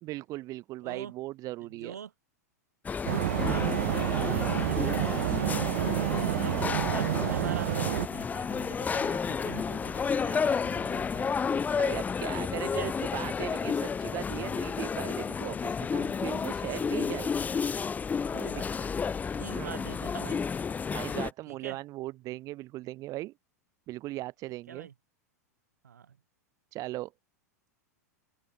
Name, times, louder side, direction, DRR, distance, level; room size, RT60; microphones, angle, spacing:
voice 1, 0.0-2.0 6.1-6.4 11.8-17.3 18.5-18.6 19.5-19.7 20.9-23.3 23.9-24.9 26.7-27.1, right 17 dB, 40° right, 1.9 m, -38 dB
voice 2, 0.8-1.1 1.6-2.1 3.0-5.6 6.4-11.3 12.6-12.9 18.3-18.9 19.4-20.5 21.5-21.8 24.7-24.9 25.8-26.2, right 8 dB, 80° right, 5.3 m, -44 dB
sound 1, 2.8-21.3, left 6 dB, 20° left, 1.2 m, -31 dB
sound 2, 3.1-8.1, right 15 dB, 60° right, 0.6 m, -29 dB
open air
hypercardioid pair, 95°, 9 cm